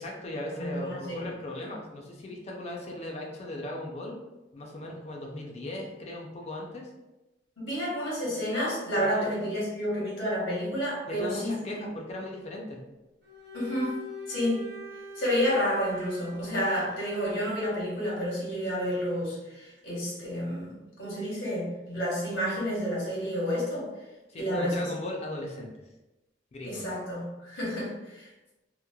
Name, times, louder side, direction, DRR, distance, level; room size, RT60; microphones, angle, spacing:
voice 1, 0.0-4.2 4.5-6.9 9.1-9.3 11.1-12.8 24.3-25.7 26.5-26.8, left 1 dB, 35° left, -1 dB, 0.4 m, -37 dB
voice 2, 0.6-1.3 7.6-11.8 13.5-14.0 14.3-14.7 15.1-23.9 24.3-24.9 26.6-28.3, equal, 80° left, -6 dB, 1.1 m, -30 dB
Bowed string instrument, 13.2-17.7, left 1 dB, 60° right, 0.5 m, -43 dB
3.0 x 2.0 x 2.2 m, 1.0 s
head